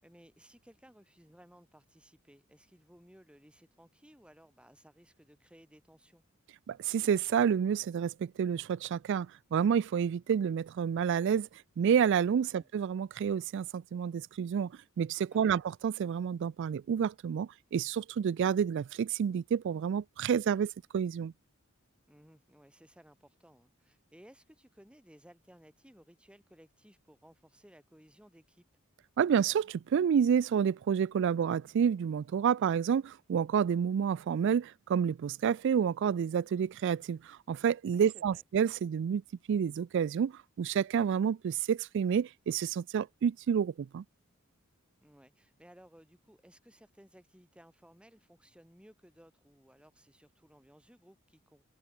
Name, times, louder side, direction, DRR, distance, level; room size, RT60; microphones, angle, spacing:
voice 1, 0.0-6.2 12.5-12.7 15.3-15.6 22.1-28.6 37.9-38.4 45.0-51.6, equal, 5° right, 3.7 m, -59 dB
voice 2, 6.7-11.5 11.8-14.7 15.0-21.3 29.2-39.2 39.5-40.3 40.6-44.0, right 7 dB, 60° right, 0.3 m, -29 dB
head